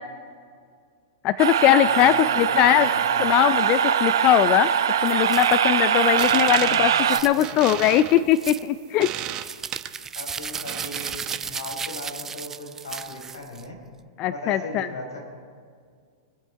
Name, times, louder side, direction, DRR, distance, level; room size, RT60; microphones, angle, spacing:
voice 1, 1.2-2.9 3.2-4.7 5.0-6.9 7.2-9.1 14.2-14.9, left 12 dB, 40° left, 15 dB, 0.4 m, -20 dB
sound 1, 1.4-7.2, right 8 dB, 75° right, 0.8 m, -22 dB
voice 2, 1.8-2.9 3.1-3.3 6.5-7.4 7.8-7.9 10.1-13.8 14.3-15.2, left 2 dB, 85° left, 1 dB, 4.8 m, -38 dB
sound 2, 5.3-5.6 6.2-6.4 7.0-7.5 8.3-8.7 9.4-13.6, right 6 dB, 20° right, 0.5 m, -35 dB
sound 3, 6.0-11.7, right 11 dB, 35° right, 1.0 m, -35 dB
25.0 x 8.4 x 4.6 m, 2.1 s
hypercardioid pair, 110°, 2 cm